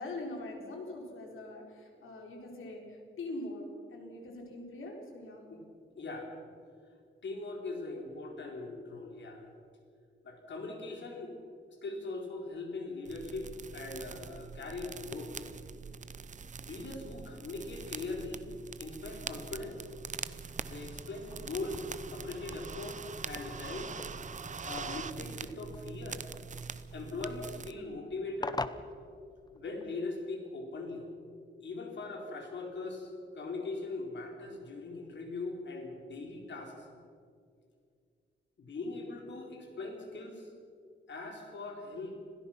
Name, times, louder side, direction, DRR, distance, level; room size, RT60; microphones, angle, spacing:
voice 1, 0.0-5.5, left 2 dB, 85° left, 1 dB, 4.1 m, -43 dB
voice 2, 5.9-6.4 7.2-9.5 10.2-11.3 11.8-15.3 16.6-18.4 18.8-19.8 20.6-24.0 24.6-26.2 26.9-28.7 29.5-31.1 31.6-36.9 38.6-40.5 41.1-42.2, left 3 dB, 65° left, 1 dB, 4.3 m, -40 dB
sound 1, 13.0-27.7, right 5 dB, 40° right, 0.7 m, -43 dB
sound 2, 20.0-25.4, right 1 dB, 5° right, 1.1 m, -53 dB
sound 3, 21.1-29.8, left 3 dB, 20° left, 0.7 m, -46 dB
26.0 x 17.0 x 5.9 m, 2.3 s
wide cardioid pair, 125°, 20 cm